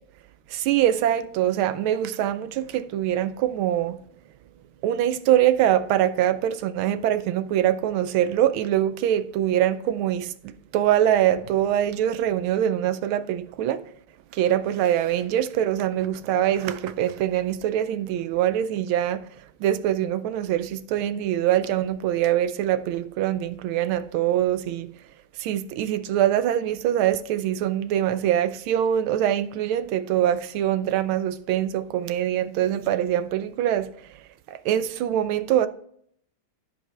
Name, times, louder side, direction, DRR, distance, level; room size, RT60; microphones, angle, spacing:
voice 1, 0.5-4.0 4.8-13.8 14.3-19.2 19.6-25.0 25.4-34.2 34.5-35.7, right 11 dB, 80° right, 1.4 m, -24 dB
14.5 x 5.2 x 3.3 m
omnidirectional pair, 2.4 m